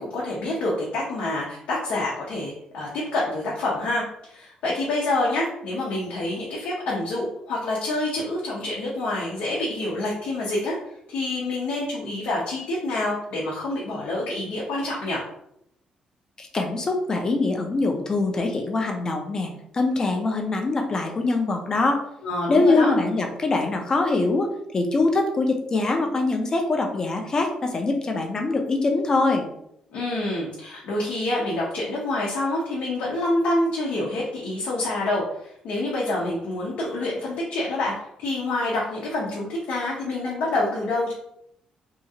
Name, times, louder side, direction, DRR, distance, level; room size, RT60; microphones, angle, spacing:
voice 1, 0.0-10.8 11.1-15.2 22.2-22.9 29.9-41.1, left 2 dB, 85° left, -5 dB, 0.7 m, -27 dB
voice 2, 16.4-22.0 22.5-29.5, left 3 dB, 30° left, 3 dB, 0.5 m, -23 dB
2.8 x 2.4 x 2.7 m, 0.76 s
cardioid pair, 145°, 2 cm